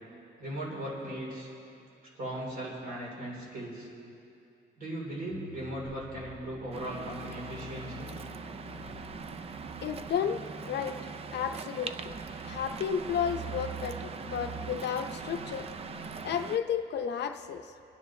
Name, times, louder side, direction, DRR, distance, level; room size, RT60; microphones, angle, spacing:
voice 1, 0.4-1.5 2.1-3.9 4.8-8.1, right 1 dB, 50° right, -4 dB, 3.6 m, -38 dB
sound 1, 5.3-16.4, right 4 dB, 80° right, 1.5 m, -47 dB
Waves surf, 6.7-16.6, right 5 dB, 30° right, 0.4 m, -42 dB
voice 2, 9.8-11.0 11.3-11.9 12.4-15.7 16.2-17.6, left 8 dB, 60° left, 6 dB, 0.6 m, -32 dB
27.5 x 9.8 x 3.2 m, 2.6 s
cardioid pair, 155°, 20 cm